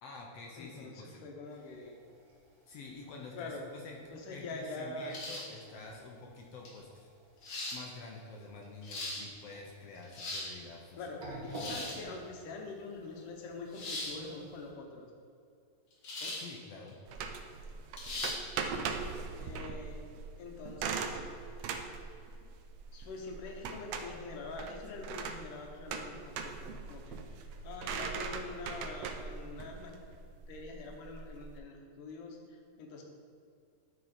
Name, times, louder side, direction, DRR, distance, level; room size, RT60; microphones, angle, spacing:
voice 1, 0.0-1.2 1.5-1.6 2.7-4.0 4.3-7.1 7.7-12.2 16.4-17.0, left 3 dB, 70° left, 0 dB, 1.5 m, -48 dB
voice 2, 0.6-2.0 3.3-3.7 4.1-5.2 11.0-15.1 16.2-16.4 19.4-20.0 20.4-21.2 22.9-29.9 30.5-33.0, left 3 dB, 85° left, 1 dB, 2.6 m, -45 dB
sound 1, 1.4-14.7, right 1 dB, 40° right, 1.4 m, -52 dB
sound 2, 5.1-5.6 6.6-6.7 7.4-7.8 8.6-9.2 10.0-10.5 11.5-12.0 13.7-14.1 16.0-16.5 16.9-17.0 18.0-18.4, left 2 dB, 45° left, 2.1 m, -39 dB
sound 3, 17.1-31.6, right 5 dB, 85° right, 1.4 m, -40 dB
11.5 x 4.8 x 4.3 m, 2.4 s
omnidirectional pair, 3.6 m